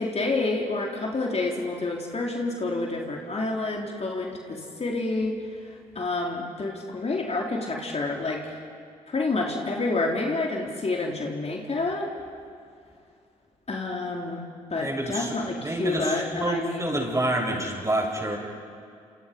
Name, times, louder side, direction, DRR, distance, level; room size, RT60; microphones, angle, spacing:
voice 1, 0.0-5.3 6.0-8.4 9.1-12.1 13.7-17.0, left 3 dB, 40° left, 0 dB, 3.7 m, -28 dB
voice 2, 14.8-18.4, right 1 dB, 20° right, 0 dB, 7.6 m, -28 dB
28.5 x 27.5 x 5.4 m, 2.3 s
supercardioid pair, 50°, 16 cm